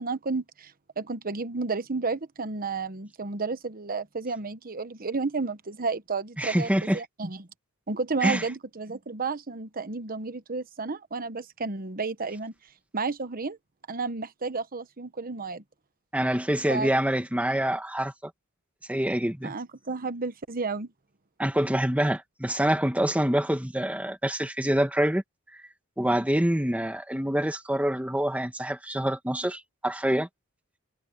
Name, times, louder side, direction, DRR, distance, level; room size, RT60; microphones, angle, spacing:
voice 1, 0.0-7.5 7.9-12.5 12.9-13.6 13.9-15.6 16.7-16.9 19.4-20.9, right 4 dB, 40° right, 1.1 m, -32 dB
voice 2, 6.4-7.0 8.2-8.4 16.1-18.3 18.9-19.5 21.4-25.2 26.0-30.3, right 1 dB, 5° right, 1.4 m, -26 dB
head